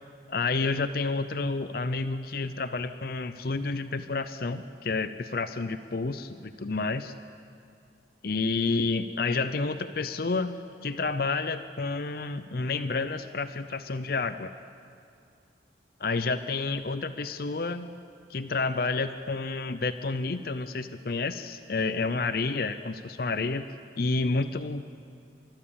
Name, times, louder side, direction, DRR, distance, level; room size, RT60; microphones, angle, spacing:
voice 1, 0.3-7.1 8.2-14.5 16.0-17.9 18.3-23.7 24.0-24.9, left 3 dB, 55° left, 11 dB, 0.6 m, -30 dB
30.0 x 13.5 x 7.0 m, 2.4 s
head